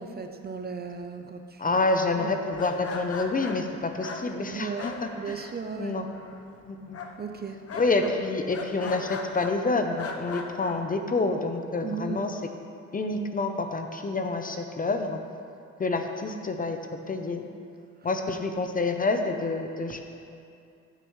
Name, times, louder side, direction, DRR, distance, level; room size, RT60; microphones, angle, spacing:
voice 1, 0.0-1.8 2.2-2.3 4.5-4.9 5.2-6.0 7.2-7.6 11.8-12.2, right 5 dB, 35° right, 6 dB, 0.6 m, -36 dB
voice 2, 1.6-5.5 5.8-6.1 6.3-7.0 7.7-12.4 12.9-15.2 15.8-16.8 17.1-17.5 18.0-20.1, left 3 dB, 30° left, 5 dB, 0.7 m, -28 dB
sound 1, 2.5-5.8 6.0-6.6 6.9-9.6 10.0-10.8, left 4 dB, 50° left, 1.0 m, -38 dB
15.0 x 6.5 x 3.2 m, 2.5 s
cardioid pair, 90°, 30 cm